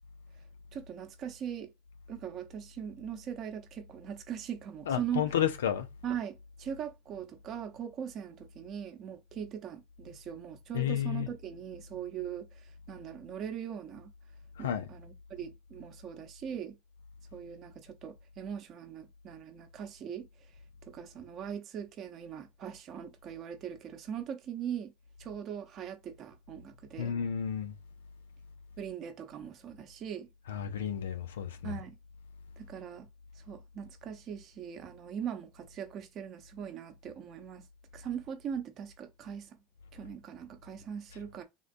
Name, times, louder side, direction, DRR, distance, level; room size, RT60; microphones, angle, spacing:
voice 1, 0.7-1.7 2.1-5.2 6.0-14.1 14.6-16.8 17.3-20.3 20.8-24.9 25.2-27.1 28.8-30.3 31.6-32.0 32.6-33.1 33.3-37.7 37.9-39.6 39.9-41.4, right 8 dB, 45° right, 0.8 m, -40 dB
voice 2, 4.9-5.9 10.7-11.3 14.6-14.9 27.0-27.8 30.4-31.8 41.1-41.2, left 9 dB, 85° left, 0.4 m, -32 dB
3.6 x 2.2 x 2.6 m
hypercardioid pair, 85°, 0 cm